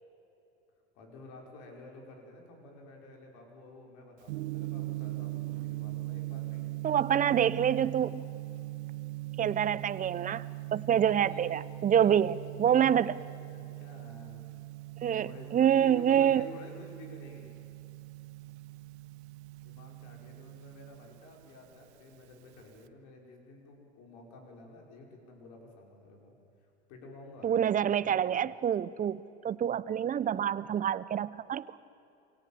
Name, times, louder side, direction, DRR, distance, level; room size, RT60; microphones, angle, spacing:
voice 1, 0.9-6.7 11.0-11.5 11.8-12.3 12.7-14.5 15.2-17.5 19.6-26.3 26.6-28.1, left 1 dB, 55° left, 1 dB, 5.7 m, -51 dB
Gong, 4.2-22.9, right 18 dB, 70° right, 1.1 m, -41 dB
voice 2, 6.8-8.2 9.4-13.1 15.0-15.3 15.5-16.4 27.4-31.8, right 9 dB, 25° right, 17 dB, 0.7 m, -27 dB
26.5 x 17.5 x 7.6 m, 2.8 s
hypercardioid pair, 100°, 34 cm